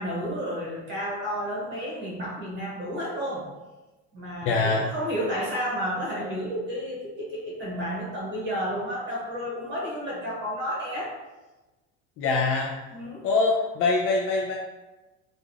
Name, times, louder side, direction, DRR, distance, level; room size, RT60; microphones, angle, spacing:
voice 1, 0.0-3.4 4.1-11.1 12.9-13.2, equal, 30° right, -5 dB, 1.4 m, -31 dB
voice 2, 4.5-4.9 12.2-12.8 13.2-14.6, left 3 dB, 40° left, -1 dB, 0.4 m, -24 dB
3.4 x 2.5 x 3.2 m, 1.1 s
supercardioid pair, 135°, 35 cm